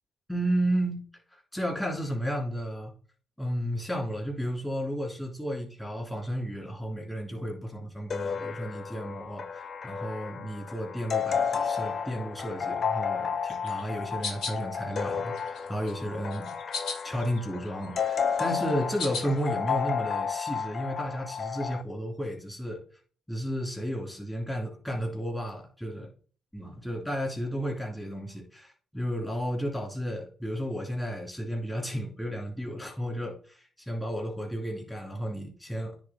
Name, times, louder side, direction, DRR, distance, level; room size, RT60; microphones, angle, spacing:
voice 1, 0.3-1.0 1.3-2.9 3.4-16.5 17.0-22.8 23.3-26.1 26.5-36.0, equal, 10° left, -1 dB, 3.1 m, -33 dB
sound 1, 8.1-21.8, left 6 dB, 45° left, 0.5 m, -32 dB
sound 2, 13.5-14.6 15.1-15.9 16.3-17.4 17.7-19.4, left 4 dB, 75° left, 1.4 m, -37 dB
9.6 x 3.6 x 4.3 m, 0.42 s
cardioid pair, 90°, 0 cm